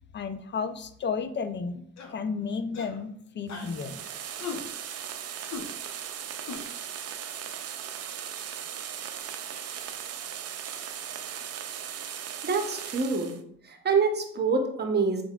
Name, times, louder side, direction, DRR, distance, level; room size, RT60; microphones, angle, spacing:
voice 1, 0.1-1.8 2.1-4.0, left 5 dB, 40° left, 10 dB, 0.4 m, -32 dB
sound 1, 2.0-2.2 2.7-3.0 3.5-3.7 4.4-4.6 5.5-5.6 6.5-6.6, left 5 dB, 65° left, 0.8 m, -37 dB
sound 2, 3.5-13.4, right 9 dB, 55° right, 0.5 m, -38 dB
voice 2, 12.4-13.3 13.6-15.2, right 4 dB, 35° right, 4 dB, 0.9 m, -26 dB
4.5 x 4.1 x 2.3 m, 0.69 s
cardioid pair, 90°, 30 cm